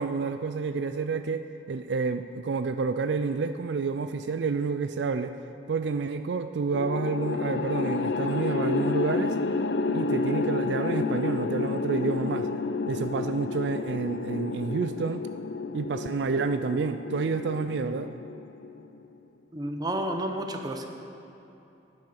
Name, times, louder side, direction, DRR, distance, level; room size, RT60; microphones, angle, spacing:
voice 1, 0.0-5.4 5.7-9.4 9.9-12.5 12.9-15.3 15.7-18.1, right 4 dB, 70° right, 10 dB, 0.4 m, -29 dB
sound 1, 6.7-19.1, left 4 dB, 65° left, 0.4 m, -30 dB
voice 2, 19.5-20.9, right 1 dB, 20° right, 4 dB, 0.8 m, -31 dB
11.5 x 9.4 x 5.5 m, 3.0 s
head